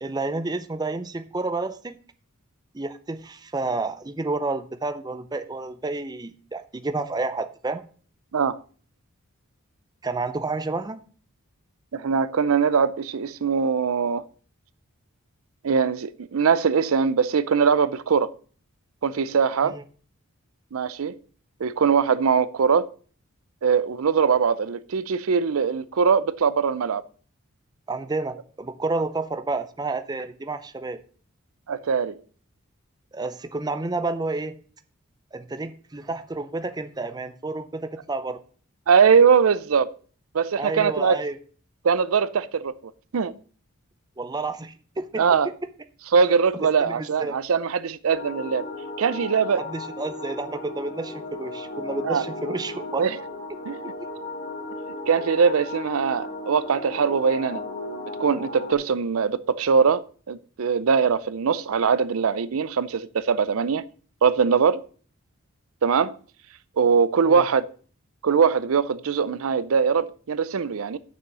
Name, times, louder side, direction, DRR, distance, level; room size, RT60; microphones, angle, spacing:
voice 1, 0.0-2.0 2.7-7.8 10.0-11.0 19.7-19.8 27.9-31.0 33.1-34.5 35.3-38.4 40.6-41.4 44.2-45.2 46.6-47.4 49.5-53.1 53.8-53.9 67.2-67.4, right 3 dB, 20° right, 0.5 m, -30 dB
voice 2, 11.9-14.2 15.6-18.3 19.0-19.8 20.7-21.2 21.6-22.9 23.6-27.0 31.7-32.2 38.9-39.9 40.3-41.2 41.8-43.3 45.2-45.5 46.1-48.6 49.0-49.6 52.0-52.2 53.0-53.2 53.7-53.8 55.1-57.6 58.2-63.8 64.2-64.8 65.8-66.1 66.8-67.6 68.2-71.0, right 6 dB, 70° right, 0.5 m, -21 dB
sound 1, 48.1-58.7, left 2 dB, 50° left, 2.9 m, -35 dB
7.0 x 6.2 x 6.7 m
head